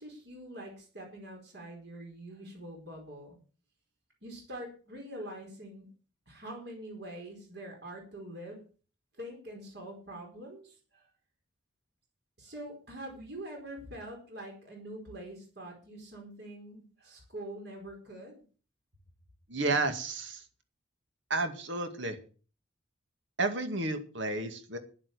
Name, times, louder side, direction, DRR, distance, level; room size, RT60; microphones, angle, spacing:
voice 1, 0.0-3.4 4.2-5.9 6.3-8.6 9.2-11.1 12.4-18.4, right 1 dB, 55° right, 1 dB, 4.6 m, -44 dB
voice 2, 19.5-20.4 21.3-22.2 23.4-24.8, right 2 dB, 70° right, 8 dB, 2.1 m, -31 dB
11.0 x 10.5 x 6.9 m, 0.39 s
head